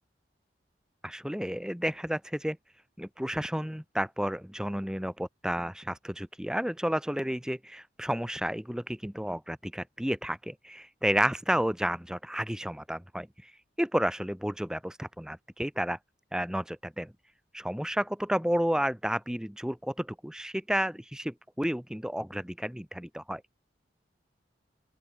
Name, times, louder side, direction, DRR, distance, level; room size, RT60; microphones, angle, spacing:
voice 1, 1.0-2.6 3.0-13.5 13.8-16.0 16.3-17.1 17.5-23.4, equal, 5° right, 1.3 m, -31 dB
open air
head